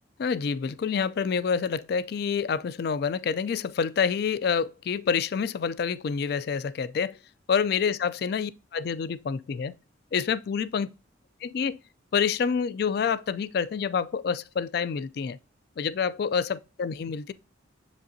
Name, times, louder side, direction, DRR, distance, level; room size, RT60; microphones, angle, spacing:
voice 1, 0.2-7.2 7.5-9.8 10.1-10.9 11.4-11.8 12.1-15.4 15.8-17.3, left 6 dB, 55° left, 0.3 m, -27 dB
7.2 x 5.1 x 2.6 m
head